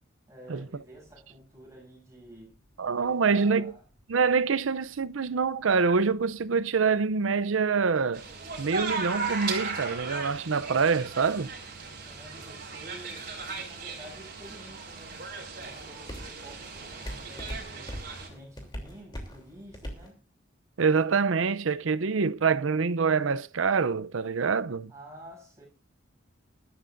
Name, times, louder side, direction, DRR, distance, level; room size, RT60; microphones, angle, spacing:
voice 1, 0.3-2.6 2.9-3.9 11.8-20.2 24.9-25.7, equal, 15° right, 7.7 m, -50 dB
sound 1, 0.6-20.1, equal, 20° left, 3.2 m, -48 dB
voice 2, 2.8-3.7 4.1-8.2 8.6-11.5 20.8-24.9, right 5 dB, 85° right, 0.6 m, -25 dB
sound 2, 8.1-18.3, right 4 dB, 45° right, 4.4 m, -37 dB
22.0 x 12.5 x 2.6 m
head